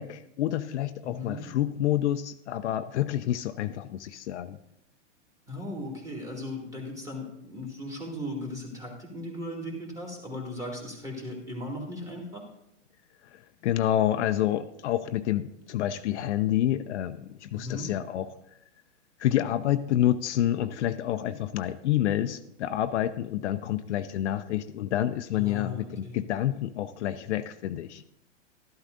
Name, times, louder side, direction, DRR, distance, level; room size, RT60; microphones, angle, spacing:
voice 1, 0.0-4.6 13.3-18.3 19.2-28.0, left 12 dB, 65° left, 9 dB, 0.6 m, -28 dB
voice 2, 1.0-1.4 5.5-12.4 17.5-17.9 25.3-26.2, left 1 dB, 10° right, -1 dB, 2.4 m, -37 dB
12.5 x 11.5 x 2.6 m, 0.80 s
hypercardioid pair, 130°, 37 cm